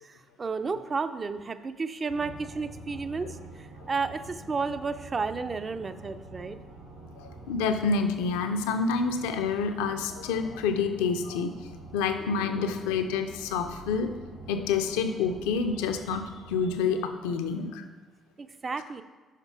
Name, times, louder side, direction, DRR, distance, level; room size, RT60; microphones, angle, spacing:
voice 1, 0.0-6.6 18.4-19.0, right 4 dB, 35° right, 10 dB, 0.4 m, -32 dB
sound 1, 2.1-17.2, right 2 dB, 90° right, 2.0 m, -46 dB
voice 2, 7.2-14.2 14.5-17.8, left 5 dB, 70° left, 8 dB, 0.4 m, -28 dB
5.8 x 5.4 x 4.6 m, 1.3 s
figure-of-eight pair, 45°, 0 cm